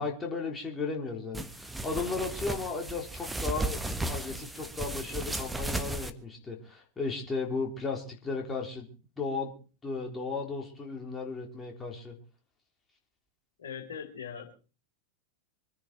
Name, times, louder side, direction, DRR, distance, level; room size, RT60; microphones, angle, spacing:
voice 1, 0.0-3.8 4.1-8.9 9.2-9.5 9.8-12.2, left 4 dB, 15° left, 0 dB, 4.2 m, -35 dB
sound 1, 1.3-6.1, right 2 dB, 5° right, 1.3 m, -35 dB
voice 2, 13.6-14.5, left 7 dB, 65° left, 1 dB, 4.8 m, -40 dB
26.0 x 10.5 x 4.6 m, 0.38 s
figure-of-eight pair, 90°, 0 cm